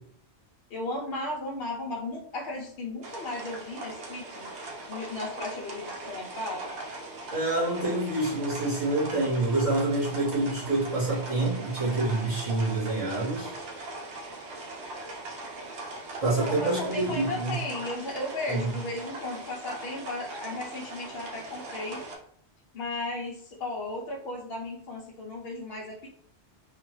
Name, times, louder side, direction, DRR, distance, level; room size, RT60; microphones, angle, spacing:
voice 1, 0.7-4.5 4.9-6.6 16.4-22.0 22.7-26.1, left 2 dB, 60° left, -3 dB, 0.8 m, -35 dB
sound 1, 3.0-22.1, right 2 dB, 75° right, 1.1 m, -40 dB
voice 2, 7.3-13.5 16.2-17.5 18.5-18.7, right 2 dB, 30° right, -7 dB, 1.5 m, -27 dB
3.6 x 2.4 x 3.1 m, 0.62 s
omnidirectional pair, 1.2 m